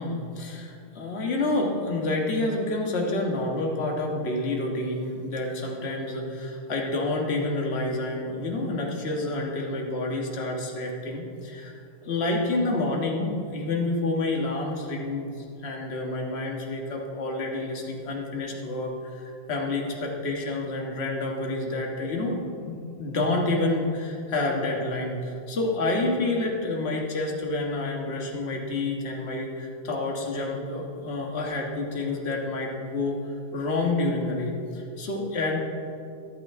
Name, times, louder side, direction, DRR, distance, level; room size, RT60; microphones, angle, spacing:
voice 1, 0.0-11.7 12.0-15.3 15.6-33.2 33.5-35.6, left 2 dB, 35° left, 0 dB, 1.6 m, -28 dB
13.0 x 12.0 x 3.7 m, 2.5 s
omnidirectional pair, 2.3 m